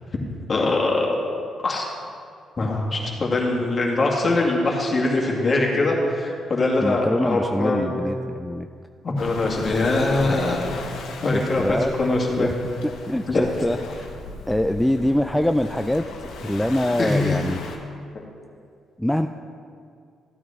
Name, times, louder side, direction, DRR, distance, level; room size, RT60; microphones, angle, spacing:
voice 1, 0.5-1.2 1.6-1.9 2.6-7.9 9.0-10.8 11.2-12.5 13.3-13.6 17.0-17.4 18.1-18.2, left 2 dB, 35° left, -1 dB, 2.1 m, -22 dB
voice 2, 6.8-8.7 11.3-11.9 12.4-12.5 13.1-14.1 14.5-17.7 19.0-19.3, left 1 dB, 5° left, 5 dB, 0.4 m, -24 dB
Waves surf, 9.2-17.8, left 3 dB, 85° left, 1.3 m, -37 dB
14.0 x 9.3 x 3.6 m, 2.3 s
cardioid pair, 90°, 0 cm